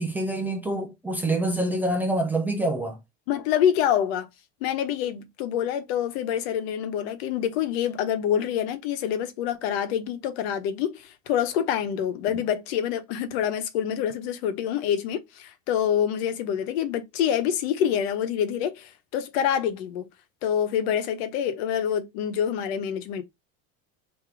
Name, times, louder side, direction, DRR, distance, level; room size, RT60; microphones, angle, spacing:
voice 1, 0.0-3.0, right 1 dB, 5° right, 0.4 m, -26 dB
voice 2, 3.3-4.3 4.6-20.1 20.4-23.2, left 9 dB, 80° left, 1.1 m, -26 dB
3.6 x 2.9 x 4.8 m
cardioid pair, 175°, 31 cm